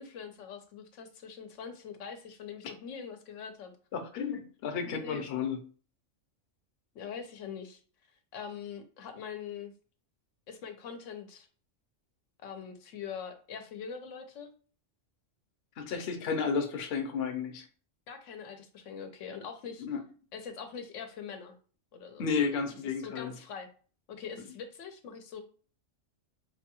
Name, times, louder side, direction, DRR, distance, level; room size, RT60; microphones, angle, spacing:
voice 1, 0.0-3.7 5.0-5.3 6.9-7.8 8.3-9.7 10.5-11.5 12.4-14.5 18.1-19.9 20.3-21.5 21.9-22.3 23.0-23.7 24.1-25.4, left 6 dB, 80° left, 6 dB, 0.9 m, -43 dB
voice 2, 3.9-5.6 15.8-17.6 19.8-20.0 22.2-23.3, left 5 dB, 60° left, 6 dB, 0.8 m, -32 dB
4.7 x 2.2 x 2.9 m, 0.40 s
omnidirectional pair, 1.3 m